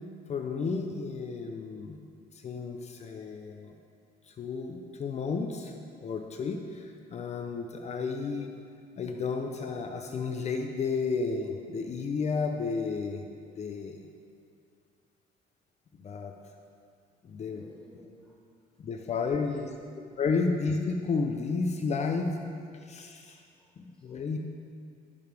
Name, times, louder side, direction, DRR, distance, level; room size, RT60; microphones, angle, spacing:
voice 1, 0.3-2.0 2.4-3.7 4.4-5.7 6.0-6.8 7.1-8.5 9.0-13.3 13.6-14.0 16.0-16.3 17.2-17.6 18.8-19.7 20.2-22.5 22.9-23.4 23.8-24.4, left 4 dB, 40° left, 3 dB, 0.8 m, -32 dB
voice 2, 17.5-18.4 19.2-19.8 20.1-20.3 23.2-23.7 24.0-24.2, equal, 5° left, -6 dB, 2.3 m, -53 dB
20.0 x 6.9 x 3.5 m, 2.3 s
cardioid pair, 110°, 17 cm